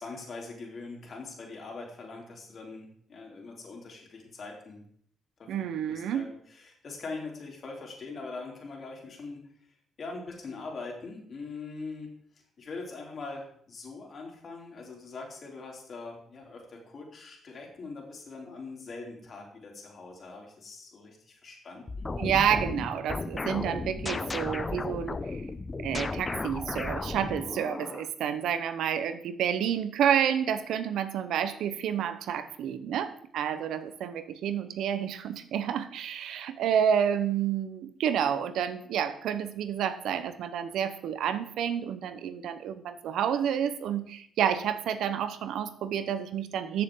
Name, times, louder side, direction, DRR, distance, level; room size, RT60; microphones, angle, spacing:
voice 1, 0.0-4.8 5.4-9.4 10.0-12.1 12.6-22.1, left 3 dB, 50° left, 0 dB, 3.4 m, -42 dB
voice 2, 5.5-6.3 22.2-25.4 25.8-46.8, right 9 dB, 80° right, 11 dB, 0.9 m, -29 dB
sound 1, 21.9-28.1, left 3 dB, 25° left, 0.7 m, -34 dB
14.0 x 6.9 x 3.8 m, 0.64 s
cardioid pair, 90°, 0 cm